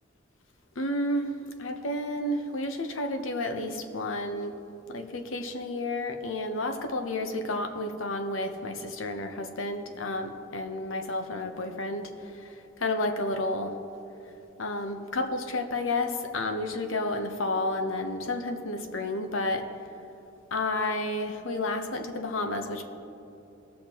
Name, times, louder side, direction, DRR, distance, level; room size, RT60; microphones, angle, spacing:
voice 1, 0.8-1.3 1.6-4.6 4.9-12.1 12.4-12.5 12.8-13.7 14.6-19.6 20.5-22.8, left 2 dB, 85° left, 6 dB, 0.8 m, -31 dB
18.0 x 6.5 x 2.9 m, 2.8 s
head